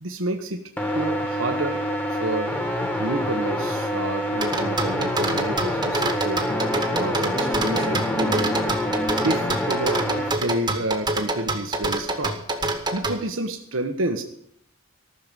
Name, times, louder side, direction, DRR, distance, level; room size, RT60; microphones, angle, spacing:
voice 1, 0.0-0.6 0.9-1.8 2.1-2.5 3.0-6.5 7.0-8.6 9.2-12.4 12.9-14.2, right 2 dB, 70° right, 4 dB, 1.2 m, -29 dB
sound 1, 0.8-10.3, equal, 10° left, 1.6 m, -26 dB
sound 2, 4.4-13.2, right 2 dB, 20° right, 1.4 m, -26 dB
sound 3, 6.4-9.7, left 1 dB, 45° left, 3.3 m, -33 dB
14.0 x 6.7 x 9.0 m, 0.69 s
head